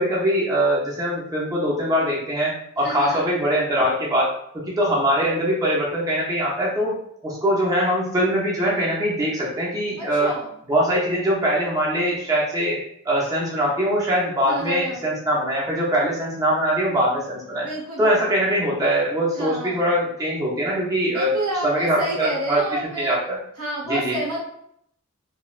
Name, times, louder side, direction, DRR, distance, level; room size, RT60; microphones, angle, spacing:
voice 1, 0.0-4.3 4.7-6.9 7.2-10.3 10.7-17.7 18.0-21.3 21.6-22.6 23.0-23.4 23.9-24.2, equal, 15° right, -5 dB, 0.5 m, -22 dB
voice 2, 2.8-3.3 10.0-10.5 14.4-15.0 17.6-18.3 19.4-19.8 21.1-23.2 23.6-24.4, right 1 dB, 80° right, -4 dB, 0.9 m, -29 dB
3.0 x 2.2 x 2.3 m, 0.72 s
head